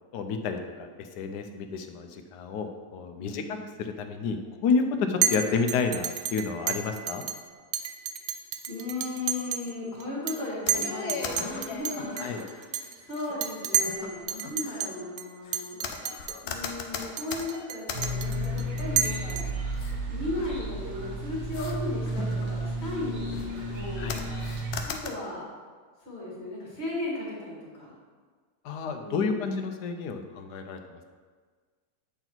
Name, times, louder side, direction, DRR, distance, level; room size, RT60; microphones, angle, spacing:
voice 1, 0.1-7.3 12.2-12.4 24.0-24.2 28.6-31.0, left 5 dB, 85° left, 6 dB, 1.2 m, -30 dB
voice 2, 3.2-3.6 8.7-19.4 20.0-24.2 24.8-25.5 26.0-27.9 28.9-29.5, left 2 dB, 40° left, -6 dB, 2.2 m, -36 dB
Chink clink, 5.2-5.4 5.7-7.4 7.7-9.7 10.0-10.4 10.7-14.0 14.3-14.9 15.2-15.3 15.5-16.4 16.7-16.8 17.2-19.7, right 8 dB, 80° right, 0.6 m, -30 dB
sound 1, 10.7-12.7 13.2-13.3 13.8-14.9 15.4-19.2 19.8-20.0 20.4-21.0 21.5-21.8 22.1-23.0 23.3-23.8 24.1-25.1, left 5 dB, 70° left, 1.1 m, -38 dB
sound 2, 17.9-24.8, right 1 dB, 50° right, 1.2 m, -32 dB
7.9 x 4.0 x 4.4 m, 1.5 s
omnidirectional pair, 1.7 m